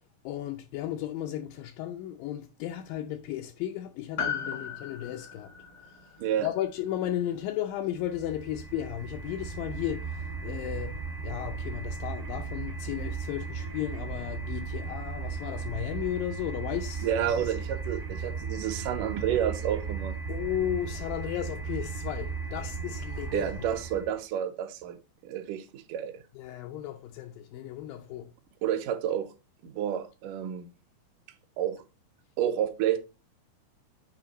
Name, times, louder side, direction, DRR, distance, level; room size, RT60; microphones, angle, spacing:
voice 1, 0.2-5.5 6.0-6.1 6.4-17.1 17.4-17.5 20.3-23.5 26.4-28.3, left 12 dB, 90° left, 1.9 m, -34 dB
Piano, 4.2-8.8 9.0-9.1, left 7 dB, 65° left, 0.9 m, -38 dB
sound 1, 8.0-24.2, right 5 dB, 60° right, 0.9 m, -36 dB
voice 2, 17.0-20.2 23.3-25.0 25.2-26.2 28.6-29.3 29.6-30.7 31.6-31.8 32.4-33.0, right 10 dB, 80° right, 1.9 m, -30 dB
8.5 x 3.2 x 3.9 m
omnidirectional pair, 4.6 m